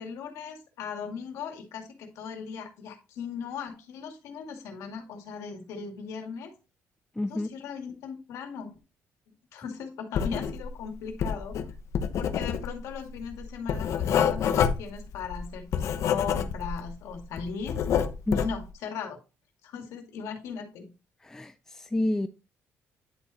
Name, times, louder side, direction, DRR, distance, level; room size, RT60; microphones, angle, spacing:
voice 1, 0.0-6.5 7.3-8.8 9.5-11.6 12.2-17.8 18.3-19.2 19.6-20.9, left 6 dB, 90° left, 2.1 m, -38 dB
voice 2, 7.2-7.5 18.3-18.4 21.2-22.3, left 1 dB, 10° left, 0.5 m, -29 dB
Writing, 10.1-10.8 11.1-16.9 17.2-18.6, left 8 dB, 70° left, 0.9 m, -27 dB
10.5 x 4.2 x 4.2 m
cardioid pair, 95°, 5 cm